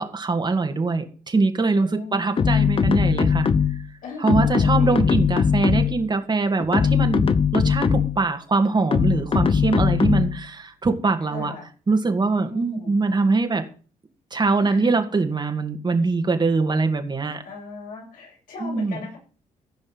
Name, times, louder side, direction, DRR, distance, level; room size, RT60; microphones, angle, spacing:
voice 1, 0.0-3.5 4.2-11.5 11.9-13.6 14.3-17.4 18.6-19.0, right 3 dB, 30° right, 5 dB, 2.2 m, -23 dB
voice 2, 1.7-2.6 4.0-5.2 11.3-11.7 12.3-12.9 14.6-15.0 17.4-19.2, left 3 dB, 75° left, -2 dB, 7.3 m, -38 dB
sound 1, 2.4-3.9 4.3-6.1 6.6-8.2 8.9-10.4, left 6 dB, 40° left, 1.0 m, -20 dB
15.5 x 5.3 x 7.9 m, 0.39 s
cardioid pair, 85°, 14 cm